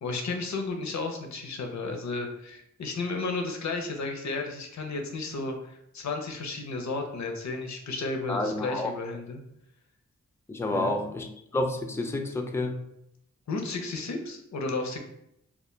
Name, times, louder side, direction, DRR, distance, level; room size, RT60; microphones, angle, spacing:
voice 1, 0.0-9.4 10.7-11.1 13.5-15.0, left 3 dB, 60° left, 3 dB, 0.6 m, -33 dB
voice 2, 8.3-8.9 10.5-11.3 11.5-12.7, left 2 dB, 10° left, 4 dB, 0.3 m, -29 dB
2.1 x 2.0 x 3.1 m, 0.77 s
cardioid pair, 45°, 31 cm